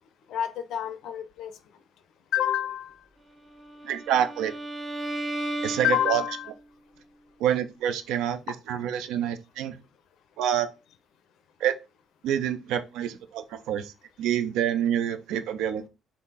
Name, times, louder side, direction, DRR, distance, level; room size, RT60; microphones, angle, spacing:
voice 1, 0.3-1.5 2.3-3.0 5.8-6.5, left 11 dB, 60° left, 0.4 m, -28 dB
Bowed string instrument, 3.5-6.6, right 1 dB, 30° right, 1.0 m, -35 dB
voice 2, 3.8-4.5 5.6-6.2 7.4-8.4 8.7-9.8 10.4-10.7 11.6-11.8 12.2-13.9 14.2-15.9, right 10 dB, 65° right, 0.4 m, -27 dB
3.5 x 2.7 x 4.1 m
figure-of-eight pair, 45°, 0 cm